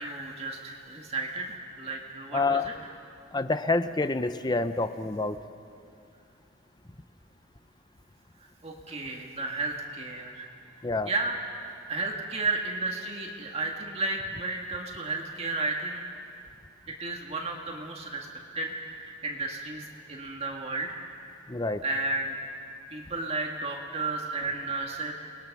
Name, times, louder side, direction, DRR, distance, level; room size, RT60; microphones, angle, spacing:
voice 1, 0.0-2.9 8.4-10.5 11.1-11.4 11.9-16.0 16.9-18.3 18.5-21.0 21.8-22.4 22.9-25.1, right 3 dB, 30° right, 0 dB, 1.9 m, -33 dB
voice 2, 2.3-2.7 3.3-5.4 10.8-11.1 21.5-21.8, left 3 dB, 20° left, 11 dB, 0.8 m, -27 dB
30.0 x 20.5 x 6.1 m, 2.5 s
head